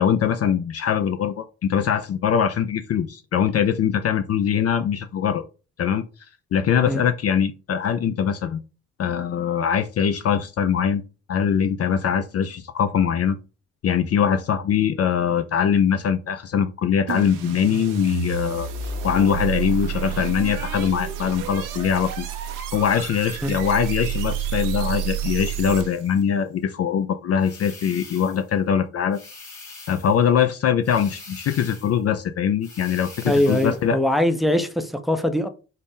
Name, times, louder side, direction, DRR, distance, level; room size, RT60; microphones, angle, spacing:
voice 1, 0.0-5.4 5.8-6.0 6.5-8.6 9.0-11.0 11.3-13.4 13.8-18.7 19.0-22.3 22.7-29.2 29.9-34.0, left 8 dB, 50° left, 0.4 m, -22 dB
sound 1, 17.1-26.2, right 8 dB, 90° right, 0.7 m, -29 dB
sound 2, 27.4-28.5 29.1-30.2 30.8-32.0 32.6-33.9, left 3 dB, 70° left, 2.1 m, -43 dB
voice 2, 33.3-35.5, left 1 dB, ahead, 0.5 m, -22 dB
3.9 x 2.0 x 3.6 m
cardioid pair, 65°, 31 cm